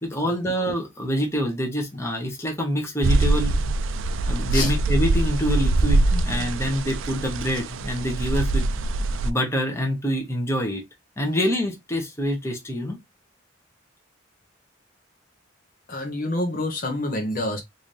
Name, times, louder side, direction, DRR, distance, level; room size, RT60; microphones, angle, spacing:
voice 1, 0.0-3.6 4.3-8.7 9.2-10.8 11.2-13.0, equal, 15° left, 1.0 m, -26 dB
sound 1, 3.0-9.3, right 2 dB, 75° right, 0.4 m, -23 dB
voice 2, 15.9-17.6, left 1 dB, 45° left, 0.8 m, -27 dB
3.9 x 2.7 x 3.2 m
head